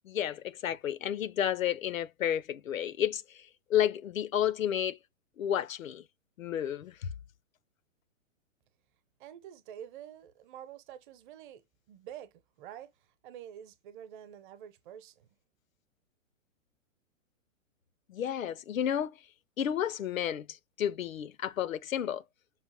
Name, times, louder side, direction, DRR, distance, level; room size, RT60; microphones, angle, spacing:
voice 1, 0.0-5.0 5.4-6.0 6.4-7.1 18.1-19.2 19.6-22.2, left 10 dB, 90° left, 0.6 m, -31 dB
voice 2, 9.2-15.3, right 10 dB, 40° right, 0.9 m, -48 dB
5.7 x 2.5 x 2.8 m
hypercardioid pair, 125°, 39 cm